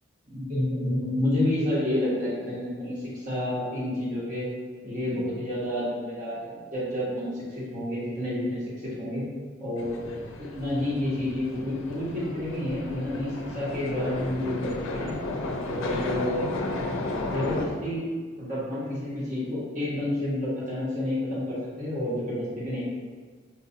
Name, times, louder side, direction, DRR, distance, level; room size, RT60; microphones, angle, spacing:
voice 1, 0.3-4.4 4.8-9.2 9.6-10.1 10.4-15.2 15.6-16.5 17.1-18.0 18.4-22.8, left 1 dB, 40° right, -9 dB, 1.2 m, -29 dB
sound 1, 9.8-17.7, left 2 dB, 90° left, 0.4 m, -33 dB
4.5 x 2.5 x 2.7 m, 1.5 s
head